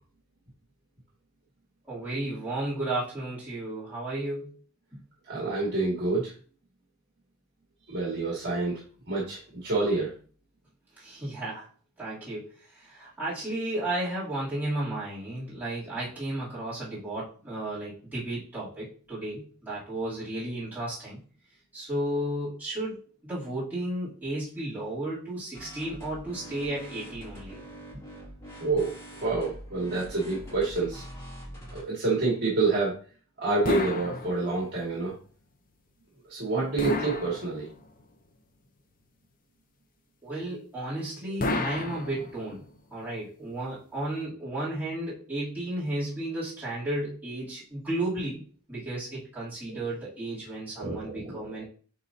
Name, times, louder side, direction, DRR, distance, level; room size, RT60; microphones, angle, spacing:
voice 1, 1.9-4.5 11.0-11.7 12.0-21.2 21.7-23.0 23.2-27.6 40.2-42.6 42.9-48.4 48.7-51.6, right 1 dB, 10° right, -12 dB, 3.0 m, -33 dB
voice 2, 5.3-6.3 7.9-8.8 9.1-10.1 28.6-31.0 31.7-33.0 33.4-35.1 36.3-37.7 50.8-51.6, right 3 dB, 50° right, -4 dB, 2.1 m, -28 dB
sound 1, 25.5-31.8, equal, 15° left, 2.4 m, -44 dB
sound 2, 33.6-34.8 36.8-38.0 41.4-42.7, left 2 dB, 40° left, 0.7 m, -32 dB
9.2 x 3.9 x 2.8 m, 0.42 s
head